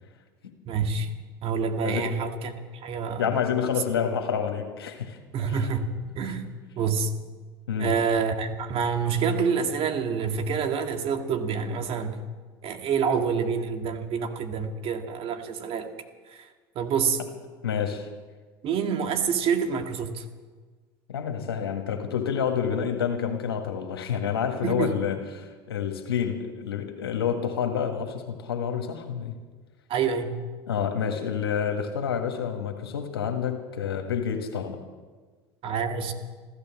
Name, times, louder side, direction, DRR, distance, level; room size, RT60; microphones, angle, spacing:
voice 1, 0.7-1.1 1.4-3.3 5.3-6.5 6.8-7.1 7.8-12.2 12.6-15.9 16.3-16.5 16.8-17.2 18.6-20.2 24.6-24.9 29.9-30.4 35.6-36.1, right 6 dB, 50° right, 5 dB, 2.0 m, -27 dB
voice 2, 1.8-2.1 3.2-5.2 5.5-5.6 7.7-7.9 17.6-18.1 21.1-29.4 30.7-34.8, left 7 dB, 90° left, 5 dB, 1.8 m, -28 dB
15.0 x 12.5 x 7.5 m, 1.4 s
hypercardioid pair, 80°, 12 cm